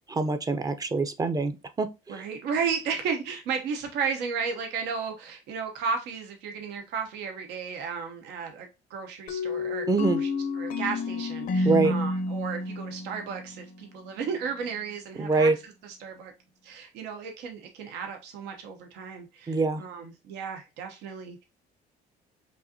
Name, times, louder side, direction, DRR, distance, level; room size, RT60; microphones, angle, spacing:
voice 1, 0.1-2.2 9.9-10.2 11.6-11.9 15.2-15.6 19.5-19.8, right 3 dB, 20° right, 0.6 m, -25 dB
voice 2, 2.1-9.9 10.2-10.3 10.6-15.5 16.0-16.3 16.6-21.4, right 6 dB, 85° right, 0.9 m, -34 dB
sound 1, 9.3-14.0, left 2 dB, 55° left, 0.6 m, -30 dB
5.4 x 2.6 x 2.7 m
cardioid pair, 110°, 17 cm